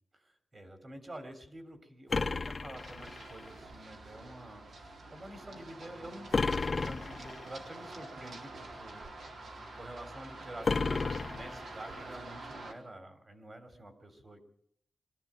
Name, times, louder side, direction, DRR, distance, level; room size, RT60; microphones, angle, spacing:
voice 1, 0.1-9.0 9.7-14.5, right 1 dB, 30° right, 8 dB, 3.2 m, -48 dB
sound 1, 2.1-3.5 6.3-7.5 10.6-12.0, left 4 dB, 35° left, 0.9 m, -32 dB
Run, 2.8-12.7, right 2 dB, 70° right, 4.1 m, -47 dB
23.5 x 14.0 x 8.8 m, 0.68 s
wide cardioid pair, 170°, 0 cm